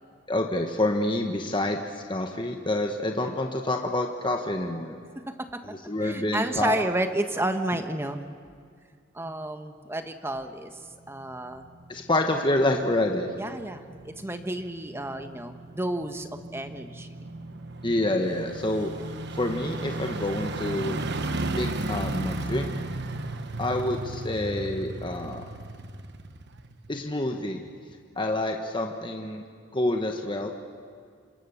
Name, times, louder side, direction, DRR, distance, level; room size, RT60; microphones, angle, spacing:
voice 1, 0.3-5.0 5.6-6.8 11.9-13.3 17.8-18.9 19.3-21.0 21.5-22.7 23.6-25.4 26.9-27.6 28.2-29.4 29.7-30.5, left 1 dB, 25° left, 3 dB, 1.4 m, -27 dB
voice 2, 5.3-5.6 6.0-8.2 9.1-10.8 11.1-11.7 13.4-17.1, right 1 dB, 10° right, 7 dB, 1.3 m, -31 dB
sound 1, 10.8-27.3 27.7-27.8, right 2 dB, 55° right, 1.3 m, -36 dB
26.5 x 26.0 x 7.2 m, 2.1 s
head